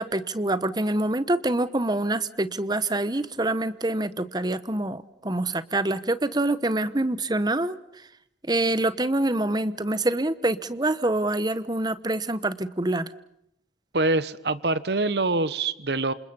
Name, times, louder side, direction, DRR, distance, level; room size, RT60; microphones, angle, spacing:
voice 1, 0.0-7.8 8.4-13.1, right 2 dB, 25° right, 14 dB, 1.0 m, -26 dB
voice 2, 13.9-16.1, right 2 dB, 70° right, 15 dB, 1.2 m, -24 dB
28.0 x 27.0 x 5.5 m, 0.78 s
head